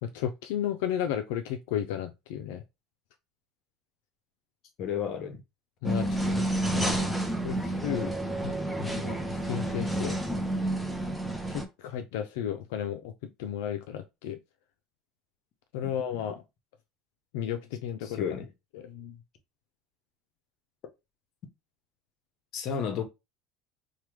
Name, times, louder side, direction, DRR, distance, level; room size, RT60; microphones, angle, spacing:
voice 1, 0.0-2.6 5.8-6.1 6.7-7.1 7.4-8.1 8.4-8.5 8.8-10.2 11.5-14.4 15.7-16.4 17.3-18.2 18.8-19.2, left 10 dB, 85° left, 0.4 m, -33 dB
voice 2, 4.8-5.4 6.0-6.4 15.8-15.9 16.2-16.3 18.0-18.5 22.5-23.0, left 7 dB, 50° left, 0.8 m, -33 dB
sound 1, 5.8-11.6, right 1 dB, ahead, 0.5 m, -30 dB
2.9 x 2.2 x 3.1 m
cardioid pair, 130°, 0 cm